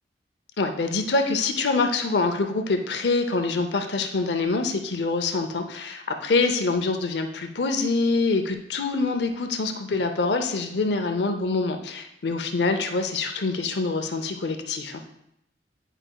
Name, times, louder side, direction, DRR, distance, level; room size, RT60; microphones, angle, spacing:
voice 1, 0.6-15.0, left 3 dB, 70° left, 6 dB, 0.6 m, -25 dB
9.9 x 5.0 x 2.3 m, 0.78 s
head